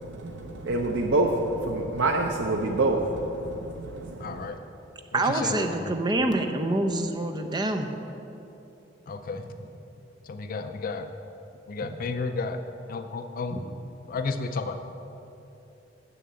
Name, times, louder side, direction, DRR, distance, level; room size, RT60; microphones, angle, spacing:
voice 1, 0.2-4.5, right 2 dB, 85° right, 2 dB, 0.6 m, -27 dB
voice 2, 4.2-4.6 5.1-5.9 9.1-9.5 10.3-11.1 11.7-12.6 12.9-13.6 14.1-14.8, left 4 dB, 50° left, 8 dB, 0.5 m, -32 dB
voice 3, 5.1-7.9 11.8-11.9 13.5-13.6, right 2 dB, 25° right, 4 dB, 0.6 m, -26 dB
7.0 x 7.0 x 7.6 m, 2.9 s
head